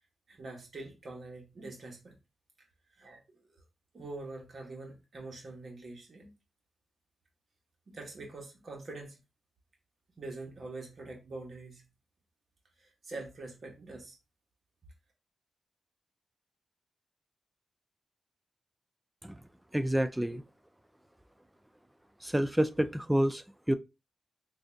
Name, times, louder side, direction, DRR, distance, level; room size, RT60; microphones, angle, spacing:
voice 1, 0.3-2.1 3.0-3.2 3.9-6.3 7.9-9.2 10.2-11.9 12.8-14.2, right 2 dB, 55° right, 1.3 m, -44 dB
voice 2, 19.7-20.4 22.2-23.4 23.7-23.8, right 1 dB, 10° right, 0.3 m, -28 dB
3.6 x 2.6 x 3.4 m
cardioid pair, 75°, 0 cm